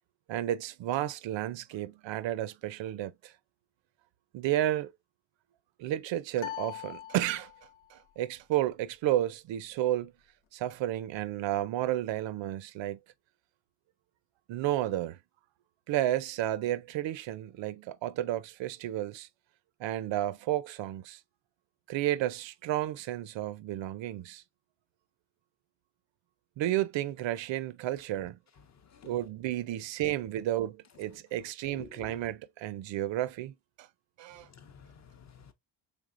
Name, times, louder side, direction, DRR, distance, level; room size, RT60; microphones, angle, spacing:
voice 1, 0.3-3.3 4.3-4.9 5.8-7.5 7.9-10.1 10.5-13.0 14.5-15.2 15.9-19.3 19.8-21.2 21.9-24.4 26.6-28.4 29.0-33.9 34.2-34.5, right 13 dB, 70° right, 0.5 m, -32 dB
sound 1, 6.4-7.9, left 13 dB, 85° left, 0.8 m, -41 dB
voice 2, 31.7-32.2 34.5-35.5, left 6 dB, 35° left, 0.5 m, -51 dB
5.1 x 3.5 x 2.5 m
cardioid pair, 175°, 46 cm